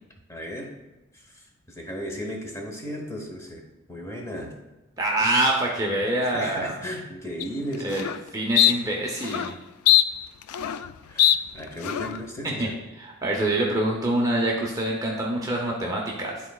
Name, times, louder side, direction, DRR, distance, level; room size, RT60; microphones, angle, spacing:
voice 1, 0.3-0.7 1.1-3.6 3.9-4.5 6.2-8.1 11.1-11.3 11.5-12.7, equal, 15° left, 1 dB, 1.0 m, -35 dB
voice 2, 5.0-6.9 7.8-8.1 8.3-9.6 12.4-12.7 13.0-16.4, right 1 dB, 15° right, -2 dB, 0.7 m, -25 dB
sound 1, 7.4-7.5 7.9-8.2 8.6-8.7 9.2-9.5 9.9-10.9 11.2-11.4 11.8-12.2, left 12 dB, 85° left, 0.3 m, -20 dB
11.5 x 4.0 x 2.3 m, 1.1 s
head